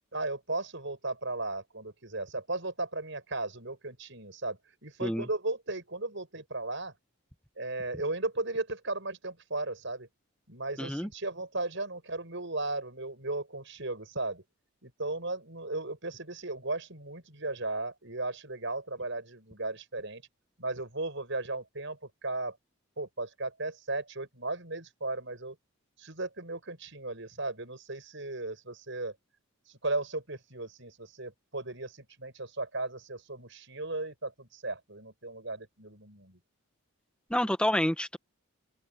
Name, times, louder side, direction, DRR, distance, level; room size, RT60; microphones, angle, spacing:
voice 1, 0.1-6.9 7.6-10.1 10.5-14.4 14.8-20.2 20.6-22.6 23.0-25.6 26.0-29.1 29.7-36.4, right 2 dB, 60° right, 7.8 m, -36 dB
voice 2, 10.8-11.1 37.3-38.2, left 1 dB, 5° left, 1.5 m, -28 dB
open air
head